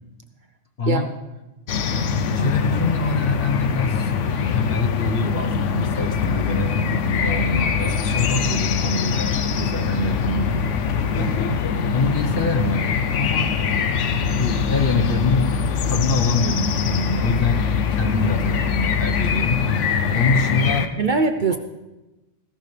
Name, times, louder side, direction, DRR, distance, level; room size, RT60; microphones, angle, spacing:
voice 1, 0.8-1.1 2.3-4.1 4.5-10.7 11.1-11.4 11.9-13.5 14.3-15.5 15.8-19.7 20.1-20.9, left 3 dB, 50° left, 5 dB, 1.3 m, -25 dB
sound 1, 1.7-20.9, left 6 dB, 80° left, 1.1 m, -23 dB
voice 2, 2.3-2.6 11.2-11.6 21.0-21.6, right 4 dB, 50° right, 7 dB, 0.7 m, -23 dB
sound 2, 6.0-19.6, left 4 dB, 65° right, 6.2 m, -32 dB
19.0 x 16.0 x 3.3 m, 1.1 s
omnidirectional pair, 1.2 m